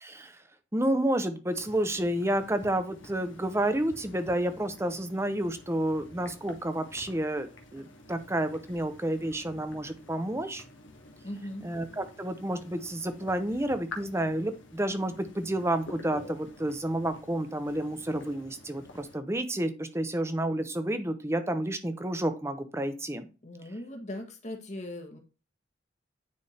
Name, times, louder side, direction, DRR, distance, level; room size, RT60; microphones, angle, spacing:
voice 1, 0.0-0.4 0.7-10.6 11.6-23.3, right 1 dB, 15° right, 9 dB, 0.7 m, -30 dB
sound 1, 1.5-19.2, left 2 dB, 85° left, 1.2 m, -49 dB
voice 2, 11.2-11.7 23.4-25.2, left 1 dB, 35° left, 4 dB, 1.2 m, -39 dB
9.6 x 3.5 x 4.3 m, 0.32 s
head